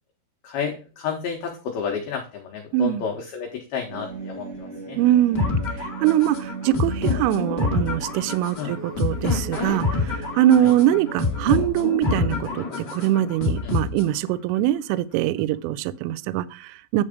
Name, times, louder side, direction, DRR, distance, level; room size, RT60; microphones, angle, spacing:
voice 1, 0.4-5.0 8.6-8.7 10.6-10.7 13.6-13.8, left 6 dB, 85° left, 2.1 m, -31 dB
voice 2, 2.7-3.0 5.0-5.6 5.8-12.6 12.9-17.0, right 12 dB, 85° right, 3.1 m, -22 dB
sound 1, 3.9-11.6, right 4 dB, 55° right, 1.0 m, -37 dB
sound 2, 5.3-14.3, left 3 dB, 65° left, 1.0 m, -27 dB
9.9 x 4.4 x 5.0 m
omnidirectional pair, 5.7 m